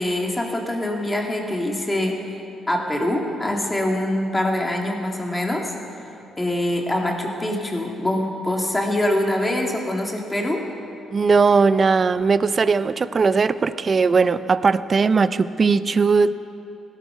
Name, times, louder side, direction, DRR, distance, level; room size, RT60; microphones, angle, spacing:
voice 1, 0.0-2.1 2.7-5.7 6.4-10.6, left 1 dB, 15° left, 1 dB, 2.1 m, -24 dB
voice 2, 11.1-16.3, right 4 dB, 40° right, 14 dB, 0.5 m, -18 dB
17.0 x 12.5 x 5.7 m, 2.8 s
cardioid pair, 90°, 0 cm